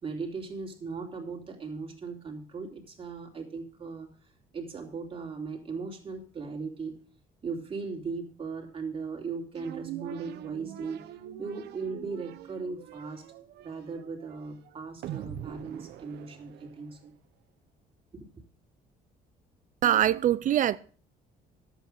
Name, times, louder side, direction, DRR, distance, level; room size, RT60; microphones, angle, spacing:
voice 1, 0.0-4.1 4.5-7.0 7.4-11.1 11.4-13.3 13.6-17.1 18.1-18.2, right 4 dB, 35° right, 2.9 m, -38 dB
sound 1, 9.5-17.0, right 12 dB, 75° right, 1.0 m, -43 dB
voice 2, 19.8-20.8, right 11 dB, 50° right, 0.5 m, -23 dB
11.0 x 8.2 x 6.4 m
cardioid pair, 110°, 17 cm